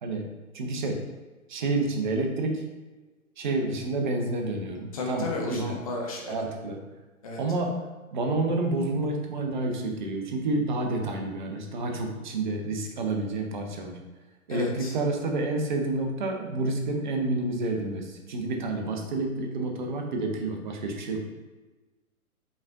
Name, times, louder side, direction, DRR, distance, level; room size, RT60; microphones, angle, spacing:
voice 1, 0.5-1.0 1.5-2.6 3.4-5.8 6.3-6.8 7.4-7.8 8.1-14.0 14.5-21.2, right 2 dB, 35° right, 3 dB, 0.6 m, -29 dB
voice 2, 4.9-6.4 7.2-7.4 14.5-14.9, left 2 dB, 25° left, -1 dB, 0.6 m, -32 dB
5.3 x 3.4 x 2.4 m, 1.2 s
figure-of-eight pair, 130°, 43 cm